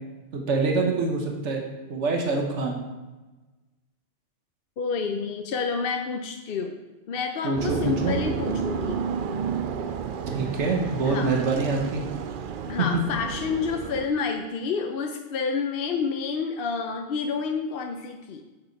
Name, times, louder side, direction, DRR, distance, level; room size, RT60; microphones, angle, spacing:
voice 1, 0.3-1.6 1.9-2.8 7.4-8.1 10.3-12.0 12.8-13.0, right 3 dB, 80° right, 1 dB, 1.5 m, -25 dB
voice 2, 4.8-6.8 7.1-9.0 10.4-10.6 11.0-11.3 12.7-18.4, left 5 dB, 60° left, 4 dB, 0.8 m, -29 dB
sound 1, 7.6-14.1, right 6 dB, 55° right, 0.6 m, -31 dB
7.7 x 7.6 x 4.6 m, 1.2 s
omnidirectional pair, 1.2 m